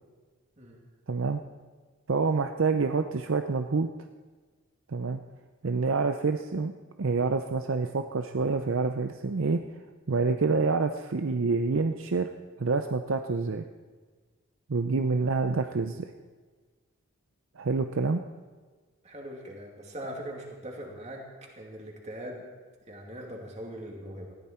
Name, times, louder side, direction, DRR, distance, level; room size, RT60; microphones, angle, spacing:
voice 1, 1.1-1.4 2.1-3.9 4.9-5.2 5.6-6.7 7.0-9.6 10.1-12.3 12.6-13.6 14.7-16.1 17.6-18.2, right 4 dB, 60° right, 7 dB, 0.6 m, -27 dB
voice 2, 19.0-22.5 22.9-24.3, equal, 30° right, 0 dB, 2.5 m, -41 dB
19.5 x 14.0 x 4.4 m, 1.4 s
head